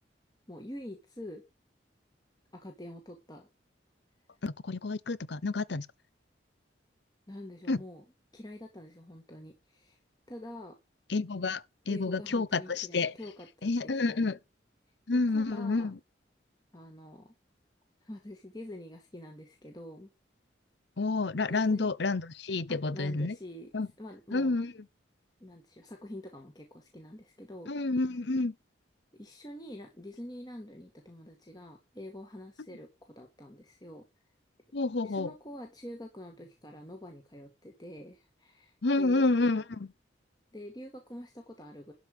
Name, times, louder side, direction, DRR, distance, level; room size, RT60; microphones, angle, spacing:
voice 1, 0.5-1.4 2.5-3.5 7.3-8.0 8.3-10.0 10.3-10.8 11.9-14.4 15.1-15.9 16.7-17.3 18.0-20.1 21.5-21.9 22.7-23.7 24.0-24.6 25.4-27.7 29.1-34.1 35.0-39.3 40.5-41.9, left 1 dB, 20° left, 1.9 m, -46 dB
voice 2, 4.4-5.9 7.7-7.8 11.1-13.1 13.6-14.4 15.1-16.0 21.0-23.4 23.7-23.9 24.3-24.7 27.7-28.5 34.7-35.3 38.8-39.9, left 3 dB, 65° left, 0.7 m, -29 dB
12.0 x 5.0 x 7.9 m
head